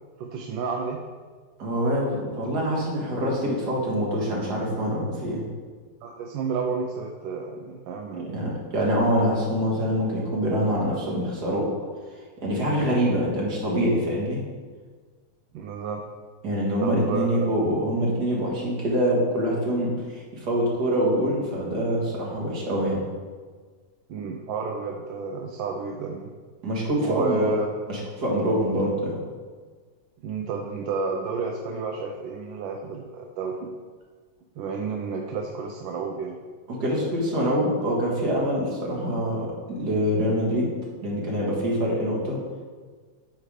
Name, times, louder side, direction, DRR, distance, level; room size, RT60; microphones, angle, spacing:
voice 1, 0.2-1.0 6.0-8.6 15.5-16.0 16.8-17.4 24.1-26.3 27.0-27.7 30.2-33.7 34.6-36.4, right 5 dB, 80° right, 1 dB, 1.3 m, -31 dB
voice 2, 1.6-5.5 8.1-11.6 12.4-14.4 16.4-23.0 26.6-27.5 27.9-29.2 36.7-40.7 41.0-42.4, equal, 60° right, -3 dB, 2.1 m, -25 dB
8.8 x 3.5 x 4.9 m, 1.5 s
omnidirectional pair, 2.1 m